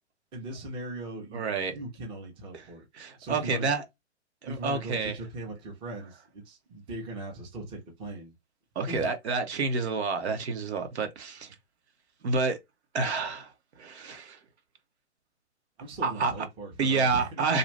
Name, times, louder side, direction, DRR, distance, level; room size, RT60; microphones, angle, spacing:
voice 1, 0.3-2.9 3.2-3.7 4.4-8.3 8.9-9.1 15.8-17.4, right 2 dB, 15° right, 0.7 m, -39 dB
voice 2, 1.3-1.7 2.9-3.8 4.4-5.1 8.7-11.5 12.2-12.6 12.9-13.5 13.8-14.4 16.0-16.3 16.8-17.6, right 4 dB, 65° right, 1.0 m, -28 dB
2.6 x 2.4 x 3.2 m
hypercardioid pair, 140°, 35 cm